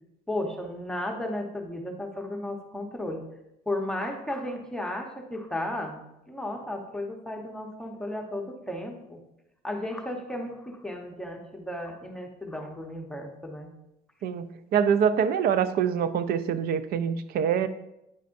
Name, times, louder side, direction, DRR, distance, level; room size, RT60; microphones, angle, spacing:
voice 1, 0.3-3.2 3.7-6.0 6.3-9.2 9.6-13.7, left 1 dB, 5° left, 1 dB, 0.9 m, -34 dB
voice 2, 14.2-17.7, right 7 dB, 65° right, 12 dB, 0.5 m, -25 dB
9.4 x 5.2 x 2.6 m, 0.87 s
cardioid pair, 110°, 17 cm